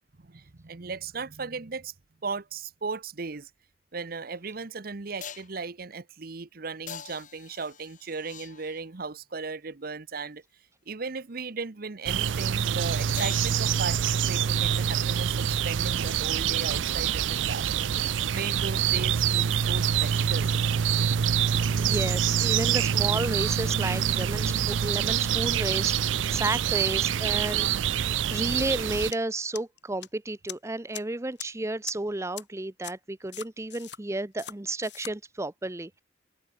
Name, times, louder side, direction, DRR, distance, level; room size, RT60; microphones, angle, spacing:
voice 1, 0.2-1.9 2.2-3.5 3.9-10.4 10.9-17.9 18.3-20.5, right 4 dB, 50° right, 0.9 m, -36 dB
sound 1, 4.1-4.2 5.2-5.6 6.9-9.0 13.2-14.3 18.1-18.2, left 7 dB, 45° left, 3.1 m, -44 dB
sound 2, 12.1-29.1, right 8 dB, 90° right, 0.5 m, -26 dB
voice 2, 21.8-27.7 27.9-36.0, right 2 dB, 15° right, 0.7 m, -32 dB
sound 3, 29.1-29.2 29.6-30.1 30.5-30.6 30.9-31.0 31.4-31.5 31.9-32.0 32.4-32.5 32.8-32.9 33.3-34.0 34.4-34.5 34.8-35.1, left 11 dB, 65° left, 5.0 m, -39 dB
head